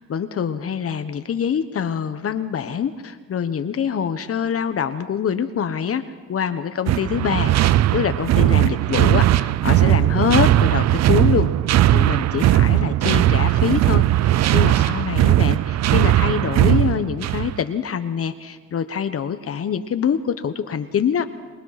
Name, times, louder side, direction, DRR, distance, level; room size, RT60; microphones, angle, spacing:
voice 1, 0.0-6.0 6.3-11.5 11.9-21.2, left 7 dB, 50° left, 10 dB, 1.1 m, -25 dB
sound 1, 6.9-17.6, right 14 dB, 60° right, 0.5 m, -18 dB
25.0 x 20.5 x 5.9 m, 1.5 s
cardioid pair, 90°, 30 cm